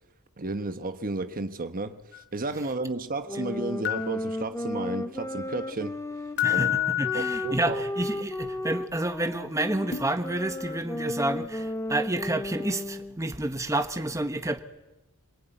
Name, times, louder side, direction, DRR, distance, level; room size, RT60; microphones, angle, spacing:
voice 1, 0.4-6.0 6.5-6.7 7.1-7.8 8.2-8.3, right 2 dB, 40° right, 1.2 m, -33 dB
sound 1, 2.1-2.2 3.8-4.1 6.4-7.5 9.9-10.0, left 15 dB, 55° left, 1.3 m, -27 dB
sound 2, 3.3-13.2, left 1 dB, 15° left, 1.2 m, -34 dB
voice 2, 6.4-14.6, right 1 dB, 15° right, 1.3 m, -29 dB
27.0 x 23.0 x 9.3 m
head